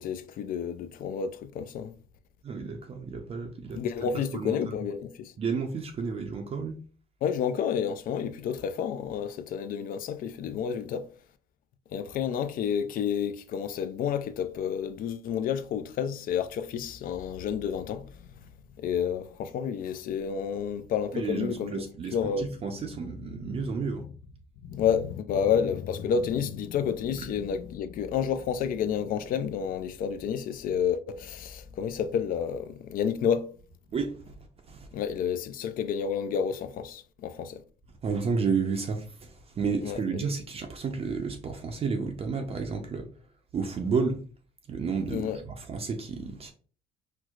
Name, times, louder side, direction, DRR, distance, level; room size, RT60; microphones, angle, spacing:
voice 1, 0.0-1.9 3.7-5.3 7.2-11.1 11.9-18.1 18.8-21.8 22.1-22.5 24.6-33.5 34.9-37.6 39.8-40.0 45.1-45.4, left 7 dB, 55° left, 0.4 m, -30 dB
voice 2, 2.4-3.8 4.3-4.8 5.4-6.8 21.1-24.0 33.9-34.3 34.7-34.9 38.0-43.1 43.5-44.2 44.7-46.5, right 5 dB, 35° right, 0.5 m, -31 dB
4.4 x 2.0 x 2.4 m
cardioid pair, 110°, 17 cm